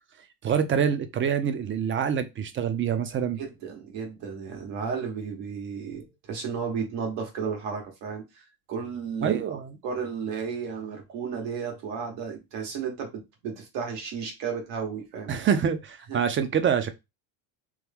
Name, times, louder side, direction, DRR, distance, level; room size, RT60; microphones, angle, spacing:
voice 1, 0.4-3.4 9.2-9.8 15.3-16.9, right 7 dB, 30° right, 0.4 m, -26 dB
voice 2, 3.4-15.3 16.1-16.2, right 6 dB, 75° right, 1.4 m, -33 dB
3.1 x 2.3 x 3.5 m
supercardioid pair, 105°, 45 cm